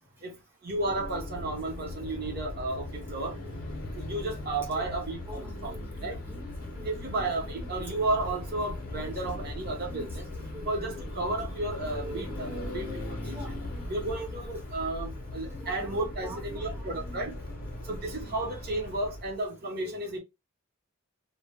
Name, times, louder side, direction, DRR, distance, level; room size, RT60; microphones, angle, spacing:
voice 1, 0.2-3.4 4.0-6.2 6.8-10.2 10.6-13.6 13.9-17.4 17.9-20.2, right 2 dB, 45° right, 0.8 m, -33 dB
sound 1, 0.7-19.4, left 1 dB, 40° left, 0.7 m, -39 dB
voice 2, 5.3-7.2 7.5-8.0 9.0-10.2 10.5-10.7 11.8-14.5 15.6-17.7 19.8-20.0, right 1 dB, 10° right, 0.6 m, -46 dB
2.1 x 2.0 x 3.2 m
head